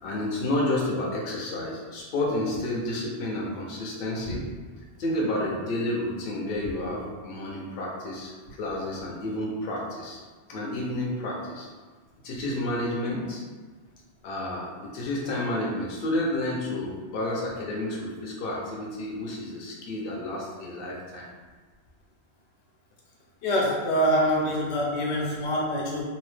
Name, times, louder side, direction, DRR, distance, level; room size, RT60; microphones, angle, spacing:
voice 1, 0.0-4.4 5.0-8.3 8.6-10.2 10.5-11.7 12.2-13.4 14.2-14.7 14.9-21.3, left 1 dB, 65° left, -3 dB, 0.8 m, -30 dB
voice 2, 23.4-26.0, equal, 90° left, -2 dB, 0.9 m, -25 dB
2.7 x 2.0 x 3.1 m, 1.4 s
omnidirectional pair, 1.1 m